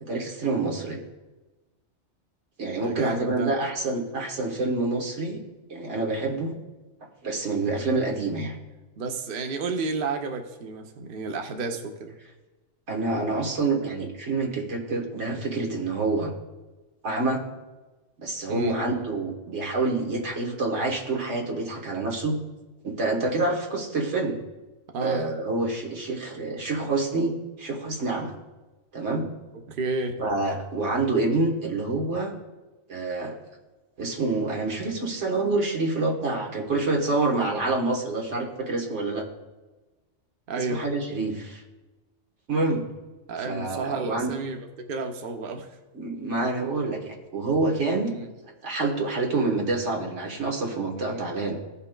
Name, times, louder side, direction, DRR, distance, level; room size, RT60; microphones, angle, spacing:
voice 1, 0.0-1.0 2.6-5.4 5.7-6.5 7.2-8.6 12.9-16.3 17.0-17.4 18.2-22.4 22.8-24.4 25.0-28.3 28.9-29.3 30.2-32.3 32.9-33.4 34.0-39.3 40.6-41.6 42.5-42.8 43.5-44.3 45.9-48.2 48.6-51.6, right 3 dB, 85° right, 0 dB, 1.6 m, -27 dB
voice 2, 2.8-3.5 9.0-12.1 18.5-18.8 24.9-25.2 29.7-30.2 40.5-40.8 43.3-45.7 48.1-48.3 51.0-51.2, right 3 dB, 55° right, 4 dB, 0.8 m, -31 dB
16.0 x 5.6 x 2.2 m, 1.1 s
omnidirectional pair, 1.2 m